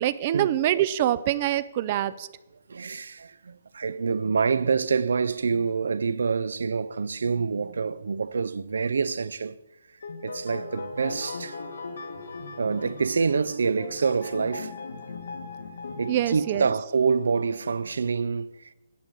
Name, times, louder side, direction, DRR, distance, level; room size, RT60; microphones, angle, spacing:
voice 1, 0.0-2.3 16.1-16.7, right 12 dB, 25° right, 0.3 m, -25 dB
voice 2, 2.7-9.6 10.2-11.6 12.6-14.7 16.0-18.7, right 5 dB, 85° right, 0.5 m, -26 dB
sound 1, 10.0-16.8, left 4 dB, 75° left, 1.3 m, -38 dB
10.0 x 5.2 x 7.8 m
hypercardioid pair, 180°, 0 cm